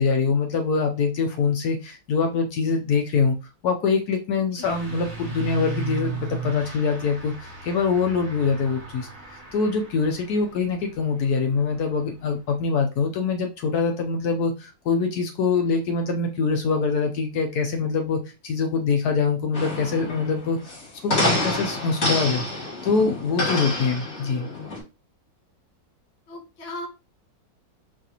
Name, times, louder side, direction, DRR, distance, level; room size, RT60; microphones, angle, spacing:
voice 1, 0.0-3.3 3.6-9.1 9.5-20.7 21.0-24.5, left 5 dB, 70° left, 4 dB, 1.0 m, -24 dB
Truck / Accelerating revving vroom, 4.6-12.6, right 6 dB, 50° right, 1.3 m, -37 dB
sound 1, 19.5-24.8, left 2 dB, 40° left, 1.5 m, -27 dB
voice 2, 26.3-26.9, left 1 dB, 90° left, 3 dB, 2.0 m, -37 dB
4.8 x 2.5 x 2.8 m, 0.28 s
omnidirectional pair, 2.0 m